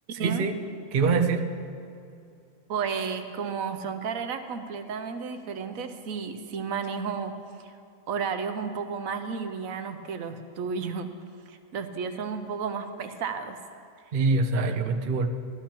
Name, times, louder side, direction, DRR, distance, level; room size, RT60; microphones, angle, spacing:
voice 1, 0.1-0.6 0.9-1.5 14.1-15.3, right 4 dB, 50° right, 5 dB, 0.7 m, -24 dB
voice 2, 2.7-7.7 8.1-11.1 11.5-13.6, right 6 dB, 80° right, 8 dB, 1.1 m, -32 dB
15.5 x 13.0 x 2.9 m, 2.4 s
omnidirectional pair, 1.4 m